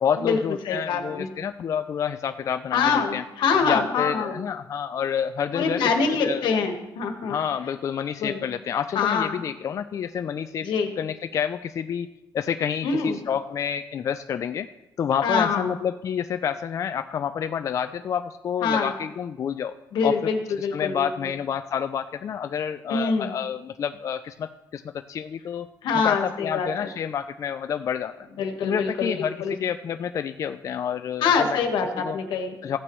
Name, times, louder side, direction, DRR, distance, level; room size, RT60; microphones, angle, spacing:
voice 1, 0.0-3.2 3.6-5.8 6.2-6.5 7.3-10.7 11.0-12.1 12.3-14.7 15.0-19.7 20.0-20.2 20.6-24.8 25.1-25.7 26.0-28.1 28.6-31.6 32.0-32.2 32.6-32.8, left 8 dB, 45° left, 9 dB, 0.4 m, -28 dB
voice 2, 0.6-1.3 2.7-4.4 5.5-7.4 8.2-8.4 8.9-9.4 10.6-10.9 12.8-13.2 15.2-15.7 18.6-18.9 19.9-21.1 22.9-23.3 25.8-26.9 28.4-29.5 31.2-32.6, left 5 dB, 85° left, 4 dB, 1.5 m, -25 dB
15.0 x 8.9 x 3.1 m, 0.96 s
cardioid pair, 145°, 8 cm